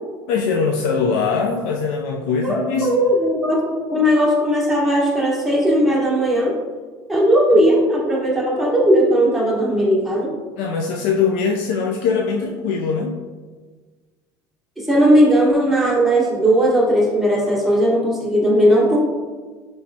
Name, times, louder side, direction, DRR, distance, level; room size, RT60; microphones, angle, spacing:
voice 1, 0.3-2.9 7.5-7.6 10.6-13.2, left 5 dB, 75° left, 0 dB, 0.4 m, -21 dB
voice 2, 2.4-3.6 3.9-6.5 7.1-10.3 14.9-19.0, equal, ahead, -5 dB, 1.2 m, -17 dB
4.4 x 3.1 x 2.7 m, 1.4 s
supercardioid pair, 100°, 11 cm